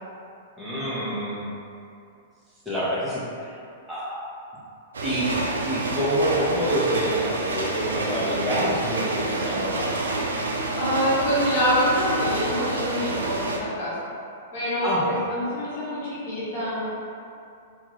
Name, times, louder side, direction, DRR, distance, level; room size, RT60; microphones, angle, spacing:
voice 1, 0.6-1.5 2.6-3.6 3.9-4.2 5.0-5.3 5.6-9.8 14.8-15.2, equal, 5° right, -10 dB, 1.0 m, -27 dB
sound 1, 4.9-13.6, right 2 dB, 85° right, 0.4 m, -28 dB
voice 2, 10.7-13.9 14.5-16.8, equal, 50° left, -10 dB, 1.1 m, -25 dB
2.5 x 2.4 x 3.1 m, 2.5 s
hypercardioid pair, 120°, 0 cm